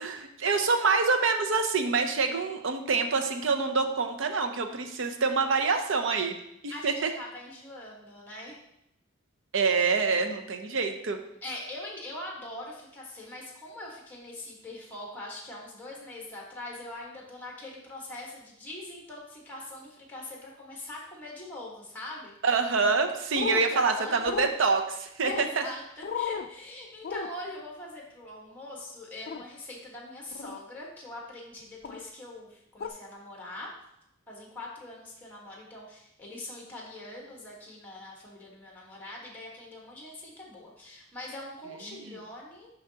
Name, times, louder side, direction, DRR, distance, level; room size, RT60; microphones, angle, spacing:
voice 1, 0.0-6.4 6.6-7.1 9.5-11.2 22.4-24.8 25.2-25.6 41.9-42.2, right 4 dB, 65° right, 6 dB, 0.6 m, -26 dB
voice 2, 6.7-8.6 11.4-22.3 23.4-24.3 24.6-24.7 25.2-33.7 34.3-42.7, left 1 dB, 10° left, -2 dB, 1.4 m, -42 dB
sound 1, 23.3-23.6 24.3-24.5 25.2-25.5 26.0-26.5 27.0-27.3 29.3-29.4 30.3-30.6 31.8-32.0 32.8-32.9, left 6 dB, 45° left, 0.4 m, -33 dB
6.8 x 5.6 x 2.8 m, 0.81 s
head